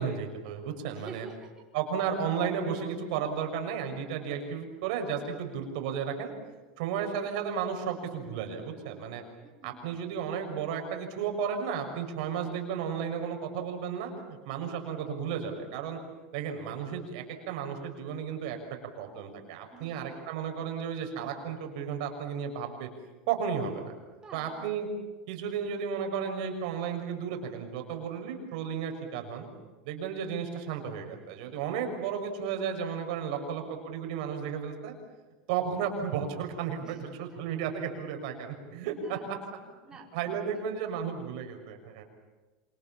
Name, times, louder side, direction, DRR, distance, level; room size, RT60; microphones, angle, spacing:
voice 1, 0.0-1.3 1.7-6.3 6.8-9.2 9.6-16.0 16.3-18.6 19.0-22.9 23.3-23.9 24.3-24.9 25.3-29.5 29.8-35.0 35.5-39.4 40.1-42.0, right 7 dB, 70° right, 4 dB, 6.3 m, -33 dB
voice 2, 0.9-1.5 4.2-4.3 9.4-9.8 12.4-12.6 19.7-20.1 24.1-24.5 36.8-37.0 39.0-39.3 39.6-40.6, right 3 dB, 15° right, -1 dB, 5.0 m, -49 dB
27.0 x 26.5 x 7.3 m, 1.2 s
supercardioid pair, 135°, 4 cm